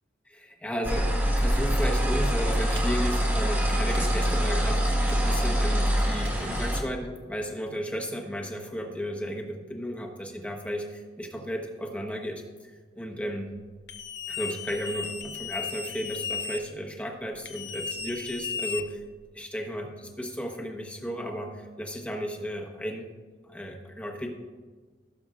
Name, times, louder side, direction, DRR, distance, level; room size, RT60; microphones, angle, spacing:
voice 1, 0.3-13.5 14.3-19.0 19.3-23.1 23.4-24.3, equal, 10° left, 1 dB, 1.1 m, -34 dB
sound 1, 0.8-6.8, equal, 10° right, 1.4 m, -25 dB
sound 2, 2.8-3.5 3.9-4.6 5.1-5.7 6.2-6.7, right 1 dB, 85° right, 1.5 m, -43 dB
sound 3, 13.9-16.6 17.4-19.2, left 6 dB, 70° left, 0.8 m, -35 dB
16.0 x 7.0 x 2.5 m, 1.4 s
head